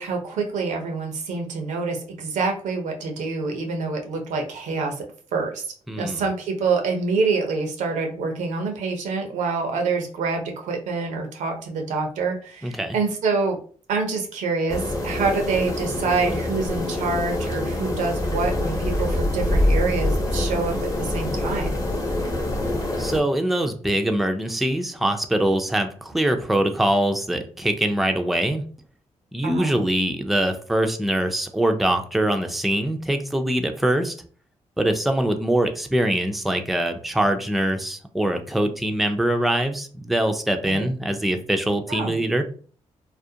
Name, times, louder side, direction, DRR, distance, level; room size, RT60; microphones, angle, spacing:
voice 1, 0.0-5.0 5.3-5.7 6.0-13.6 13.9-21.8 29.4-29.8 40.7-40.9 41.9-42.2, right 4 dB, 90° right, 3 dB, 0.6 m, -26 dB
voice 2, 5.9-6.2 12.6-13.0 23.0-28.6 29.3-34.2 34.8-42.4, right 1 dB, ahead, 5 dB, 0.4 m, -23 dB
sound 1, 14.7-23.2, left 1 dB, 25° left, 0.8 m, -25 dB
2.4 x 2.1 x 2.7 m, 0.42 s
cardioid pair, 70°, 12 cm